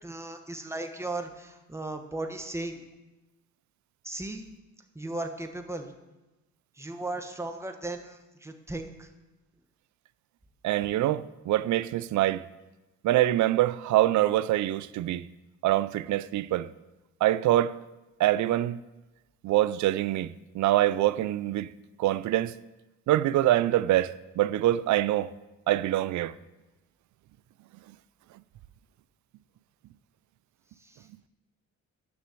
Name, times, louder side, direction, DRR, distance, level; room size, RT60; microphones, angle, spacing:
voice 1, 0.0-2.8 4.0-4.5 4.9-5.9 6.8-9.1 30.8-31.1, right 2 dB, 10° right, 1.2 m, -36 dB
voice 2, 10.6-12.4 13.0-15.3 15.6-16.7 17.2-17.8 18.2-18.8 19.4-21.7 22.0-22.6 23.1-25.3 25.7-26.3, right 14 dB, 70° right, 0.5 m, -25 dB
9.8 x 6.3 x 7.6 m
cardioid pair, 90°, 30 cm